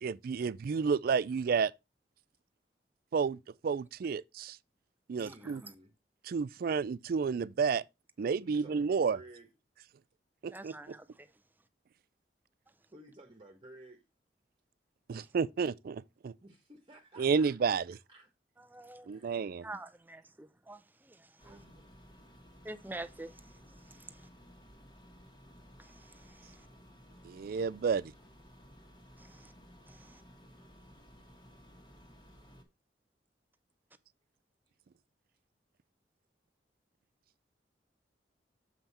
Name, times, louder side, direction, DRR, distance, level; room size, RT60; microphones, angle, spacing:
voice 1, 0.0-1.7 3.1-4.6 5.1-5.6 6.3-7.8 8.2-9.2 10.4-10.9 15.1-16.3 17.2-17.8 19.1-19.7 27.2-28.1, right 5 dB, 55° right, 0.4 m, -31 dB
voice 2, 5.2-5.9 8.4-9.5 12.9-14.0 16.4-17.7 18.1-18.3 19.0-19.4 21.4-21.9, right 1 dB, 30° right, 1.3 m, -54 dB
voice 3, 10.5-11.3 18.7-19.1 19.6-21.3 22.6-23.3 23.9-24.1 25.8-26.6 29.2-29.5 29.9-30.2, right 2 dB, 10° right, 0.6 m, -47 dB
sound 1, 21.4-32.6, equal, 25° left, 1.6 m, -57 dB
7.3 x 5.6 x 4.2 m
head